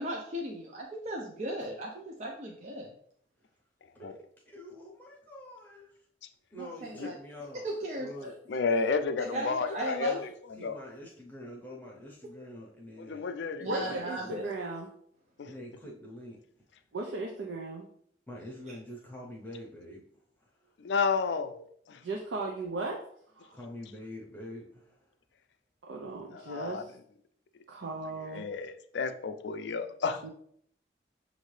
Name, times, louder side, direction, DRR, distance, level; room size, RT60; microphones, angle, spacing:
voice 1, 0.0-2.9 6.6-7.1 7.6-8.3 9.2-10.2 13.6-14.4, right 1 dB, 40° right, -1 dB, 0.5 m, -36 dB
voice 2, 3.9-6.0 6.5-7.7 8.0-8.3 10.0-10.2 10.6-13.2 13.9-14.4 15.4-16.4 18.3-20.0 20.4-20.7 23.5-25.1, left 1 dB, 10° left, -3 dB, 0.7 m, -46 dB
voice 3, 8.5-10.3 10.6-10.8 13.0-13.9 15.4-15.5 20.8-22.0 26.3-26.8 28.3-30.2, left 4 dB, 75° left, 9 dB, 0.4 m, -31 dB
voice 4, 13.6-14.9 16.9-17.9 22.0-23.0 23.4-23.6 25.9-26.9 27.7-28.4 30.2-30.3, right 2 dB, 85° right, 1 dB, 0.5 m, -36 dB
6.4 x 2.6 x 3.2 m, 0.65 s
head